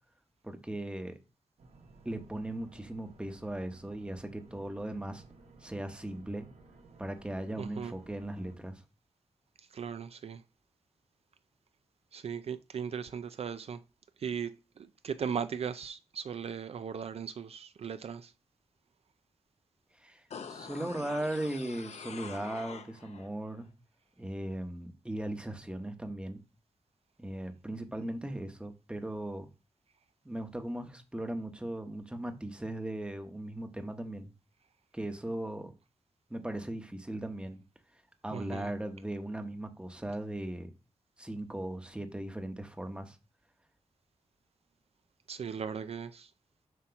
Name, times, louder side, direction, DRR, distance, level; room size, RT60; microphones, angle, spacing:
voice 1, 0.4-1.2 2.0-5.2 5.6-6.5 7.0-8.8 20.0-23.7 24.2-26.4 27.2-29.5 30.2-34.3 34.9-35.7 36.3-37.6 38.2-40.7 41.2-43.2, right 1 dB, 10° right, 0.9 m, -38 dB
sound 1, 1.6-8.6, right 3 dB, 85° right, 1.1 m, -57 dB
voice 2, 7.6-7.9 9.7-10.4 12.1-13.8 14.2-14.5 14.8-18.3 38.3-38.7 45.3-46.3, right 7 dB, 60° right, 0.4 m, -38 dB
sound 2, 20.3-23.3 23.6-23.7, left 6 dB, 70° left, 0.8 m, -45 dB
7.7 x 2.9 x 5.7 m
wide cardioid pair, 110°, 11 cm